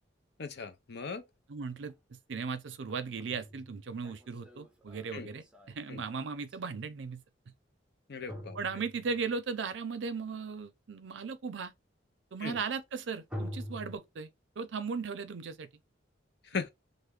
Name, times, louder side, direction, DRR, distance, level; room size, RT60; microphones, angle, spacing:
voice 1, 0.4-1.2 5.1-5.3 5.9-6.0 8.1-8.6 12.4-12.6 16.4-16.7, left 5 dB, 65° left, 0.6 m, -38 dB
voice 2, 1.5-7.2 8.5-11.7 12.3-14.3 14.6-15.7, right 5 dB, 75° right, 0.5 m, -37 dB
sound 1, 1.9-2.0 2.9-6.5 8.3-9.4 13.3-14.0, equal, 5° right, 0.5 m, -44 dB
3.2 x 2.1 x 3.5 m
head